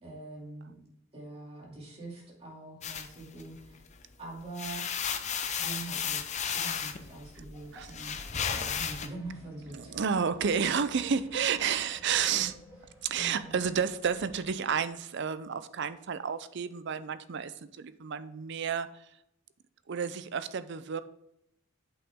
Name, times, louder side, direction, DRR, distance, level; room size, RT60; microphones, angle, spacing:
voice 1, 0.0-0.7 1.1-3.8 4.2-4.9 5.6-10.2 12.3-12.4 13.1-13.6, right 2 dB, 30° right, -3 dB, 2.6 m, -44 dB
sound 1, 2.8-4.0 4.4-9.1, left 7 dB, 35° left, 0.6 m, -34 dB
sound 2, 7.5-14.6, left 1 dB, 10° right, 2.8 m, -54 dB
voice 2, 9.7-12.6 13.0-18.9 19.9-21.0, right 7 dB, 55° right, 13 dB, 0.5 m, -31 dB
8.0 x 6.1 x 3.6 m, 0.80 s
head